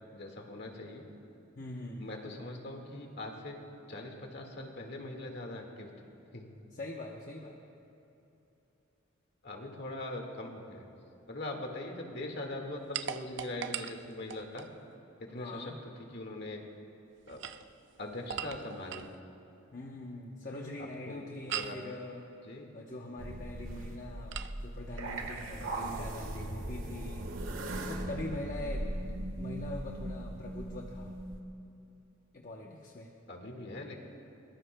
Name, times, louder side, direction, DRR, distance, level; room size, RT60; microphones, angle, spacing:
voice 1, 0.1-1.0 2.0-3.6 3.9-5.9 6.3-6.5 9.4-10.9 11.3-14.7 15.2-15.7 16.0-16.6 17.3-17.4 18.0-19.1 20.5-20.6 21.1-21.8 22.4-22.8 27.8-28.0 33.3-34.0, left 1 dB, 60° left, 2 dB, 1.8 m, -41 dB
voice 2, 1.6-2.0 6.7-7.6 15.3-15.8 19.7-22.3 22.7-27.3 27.8-28.9 29.4-31.1 32.3-33.1, left 2 dB, 45° left, -1 dB, 0.9 m, -43 dB
sound 1, 12.9-14.7 17.2-19.2 21.5-21.9 24.3-24.6, right 9 dB, 60° right, 0.5 m, -40 dB
sound 2, 23.2-31.4, right 1 dB, 90° right, 1.4 m, -39 dB
22.5 x 21.0 x 2.2 m, 2.9 s
head